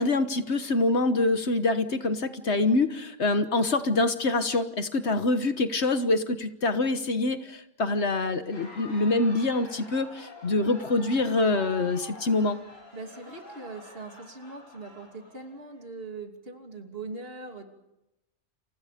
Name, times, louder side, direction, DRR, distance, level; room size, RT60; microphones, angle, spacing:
voice 1, 0.0-12.6, left 2 dB, 60° left, 9 dB, 1.6 m, -25 dB
Crowd, 8.3-15.8, left 1 dB, 85° left, 8.5 m, -47 dB
voice 2, 12.9-17.7, right 3 dB, 50° right, 4 dB, 3.2 m, -41 dB
29.5 x 29.0 x 5.2 m, 0.91 s
omnidirectional pair, 1.3 m